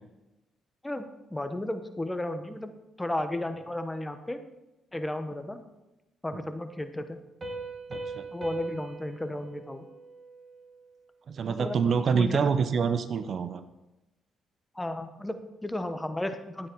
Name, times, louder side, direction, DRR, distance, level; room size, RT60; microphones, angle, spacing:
voice 1, 0.8-4.4 4.9-5.6 6.2-7.2 8.3-9.9 11.4-11.8 12.1-12.5 14.7-16.7, left 1 dB, 10° left, 8 dB, 1.0 m, -34 dB
Piano, 7.4-10.8, right 3 dB, 30° right, 2.2 m, -41 dB
voice 2, 7.9-8.2 11.3-13.6, right 6 dB, 55° right, 11 dB, 0.7 m, -26 dB
12.0 x 9.1 x 4.7 m, 0.99 s
cardioid pair, 90°, 0 cm